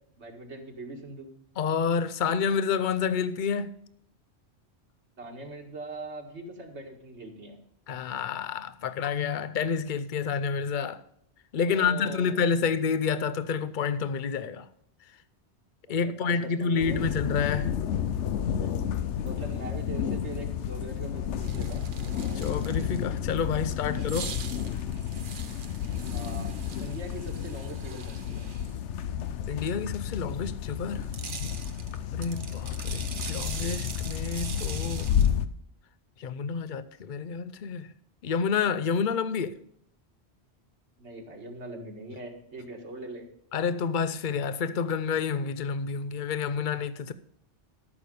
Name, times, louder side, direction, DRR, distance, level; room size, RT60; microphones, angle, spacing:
voice 1, 0.2-1.3 5.2-7.6 11.6-12.5 15.9-17.0 19.2-21.8 23.8-23.9 26.1-26.5 26.8-28.5 41.0-43.2, right 2 dB, 80° right, 2.0 m, -41 dB
voice 2, 1.6-3.7 7.9-11.0 11.5-14.7 15.9-17.7 22.3-24.3 29.5-31.1 32.1-35.1 36.2-37.9 38.2-39.6 43.5-47.1, left 6 dB, 50° left, 0.8 m, -29 dB
sound 1, 16.8-35.5, left 9 dB, 90° left, 1.0 m, -31 dB
sound 2, 21.4-23.2 23.9-28.8 30.9-35.3, right 6 dB, 50° right, 0.9 m, -42 dB
13.5 x 6.6 x 5.3 m
omnidirectional pair, 1.2 m